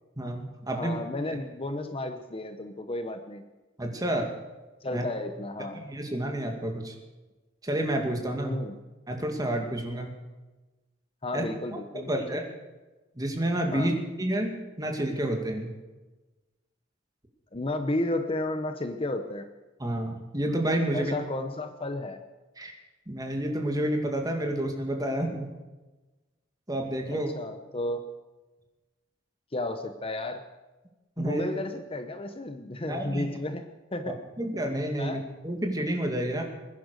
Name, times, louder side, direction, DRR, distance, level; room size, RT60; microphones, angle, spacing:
voice 1, 0.2-1.0 3.8-4.3 4.9-5.0 5.8-6.9 7.6-8.6 9.1-10.1 11.3-11.4 11.9-12.4 13.2-15.7 19.8-21.1 22.6-22.7 23.1-25.5 26.7-27.3 31.2-31.5 32.9-33.3 34.4-36.4, right 1 dB, 20° right, 2 dB, 2.4 m, -29 dB
voice 2, 0.8-3.4 4.8-5.8 8.4-8.7 11.2-12.1 13.7-13.9 17.5-19.5 20.9-22.2 27.1-28.1 29.5-30.4 31.2-33.6 33.9-34.2 35.0-35.2, left 2 dB, 30° left, 8 dB, 0.9 m, -32 dB
21.5 x 10.5 x 6.6 m, 1.2 s
head